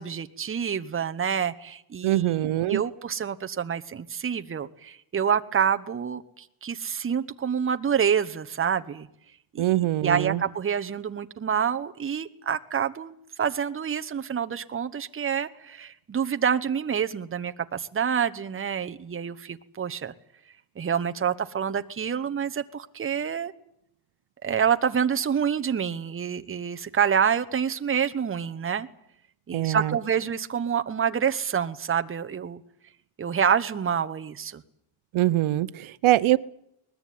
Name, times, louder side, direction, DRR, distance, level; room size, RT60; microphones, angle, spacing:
voice 1, 0.0-2.4 2.6-9.1 9.5-9.8 10.0-20.1 20.8-23.5 24.4-28.9 29.5-32.6 33.2-34.6, right 7 dB, 25° right, 10 dB, 1.0 m, -27 dB
voice 2, 2.0-2.8 9.6-10.4 29.5-30.0 35.1-36.4, right 15 dB, 80° right, 15 dB, 0.8 m, -23 dB
21.0 x 20.5 x 9.4 m, 0.74 s
wide cardioid pair, 165°, 48 cm